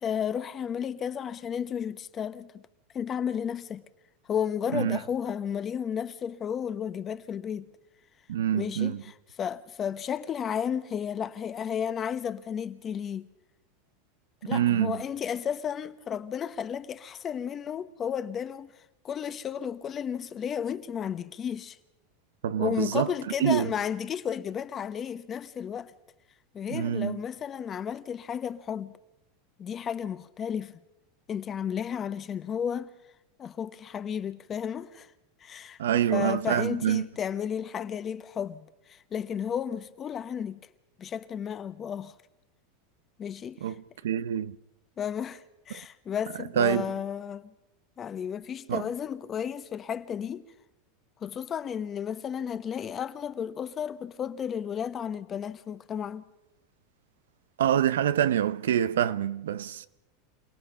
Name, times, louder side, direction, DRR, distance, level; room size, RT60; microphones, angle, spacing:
voice 1, 0.0-2.6 2.9-3.9 4.3-7.6 8.5-13.3 14.4-18.7 19.0-21.8 22.6-25.9 26.5-28.9 29.6-30.8 31.3-32.9 33.4-35.1 35.4-40.7 41.0-42.1 43.2-43.7 45.0-47.5 48.0-50.4 51.2-56.2, left 8 dB, 30° left, 1.1 m, -33 dB
voice 2, 8.3-9.0 14.5-15.0 22.4-23.1 23.4-23.7 26.7-27.2 35.8-37.0 43.6-43.7 44.0-44.6 46.6-46.9 48.7-48.9 57.6-59.9, right 10 dB, 85° right, 0.7 m, -26 dB
28.0 x 17.5 x 5.6 m
hypercardioid pair, 110°, 0 cm